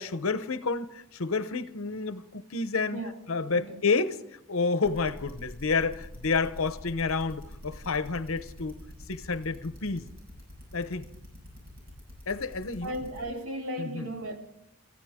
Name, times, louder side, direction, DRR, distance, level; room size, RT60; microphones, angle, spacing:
voice 1, 0.0-3.0 3.3-4.2 4.5-8.8 9.1-10.0 10.7-11.1 12.3-12.9 13.8-14.1, left 4 dB, 70° left, 0.9 m, -29 dB
sound 1, 4.8-13.2, equal, 45° right, 7.5 m, -44 dB
voice 2, 12.8-14.4, right 1 dB, 75° right, 2.4 m, -35 dB
27.5 x 14.5 x 3.6 m
head